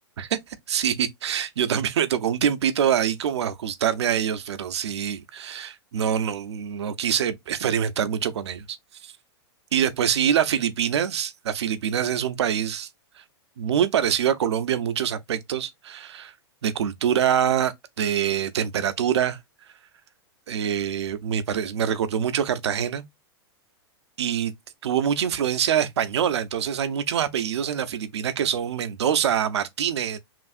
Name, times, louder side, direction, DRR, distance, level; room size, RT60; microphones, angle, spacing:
voice 1, 0.2-8.6 9.0-9.1 9.7-12.9 13.6-16.3 16.6-19.4 20.5-23.0 24.2-24.5 24.8-30.2, right 9 dB, 85° right, 0.7 m, -25 dB
5.9 x 2.5 x 2.5 m
hypercardioid pair, 135°, 14 cm